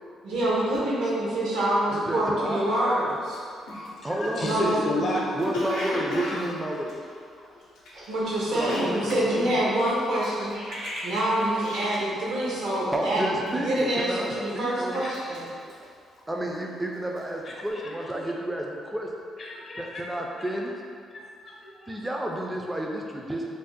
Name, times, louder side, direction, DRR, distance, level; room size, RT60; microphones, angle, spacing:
voice 1, 0.2-3.4 4.4-4.8 8.1-10.5 11.0-13.2 13.6-15.4, right 1 dB, 85° right, -6 dB, 0.8 m, -26 dB
voice 2, 1.9-2.8 4.0-4.5 5.3-7.0 8.5-9.4 12.0-12.5 12.9-15.1 15.6-15.8 16.3-19.1 19.8-20.7 21.9-23.5, right 1 dB, 10° right, 0 dB, 0.3 m, -31 dB
Cough, 3.3-3.4 3.7-8.1 8.4-12.2 12.5-12.8 13.1-13.6 14.1-14.7 15.0-16.6 17.0-17.3, left 2 dB, 90° left, 0.6 m, -35 dB
voice 3, 4.0-5.5 11.0-11.2 11.4-11.5 11.8-12.0 15.0-15.2 17.4-17.5 18.0-18.1 19.4-20.0 21.1-22.0, left 1 dB, 45° left, -2 dB, 0.5 m, -32 dB
sound 1, 5.7-7.1 7.4-7.6 7.9-9.3 9.6-11.6, equal, 65° right, 1.0 m, -39 dB
2.5 x 2.1 x 3.8 m, 2.2 s
cardioid pair, 90°, 0 cm